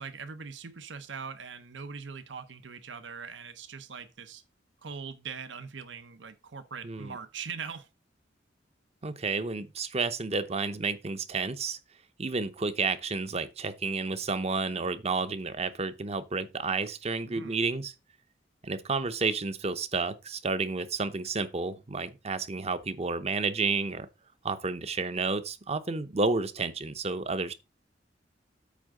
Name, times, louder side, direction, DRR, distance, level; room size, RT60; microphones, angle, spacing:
voice 1, 0.0-4.4 4.8-7.9 17.3-17.6, right 6 dB, 75° right, 0.8 m, -41 dB
voice 2, 6.8-7.2 9.0-11.8 12.2-17.9 18.6-24.1 24.4-27.5, right 4 dB, 35° right, 0.7 m, -31 dB
8.5 x 3.6 x 6.4 m
head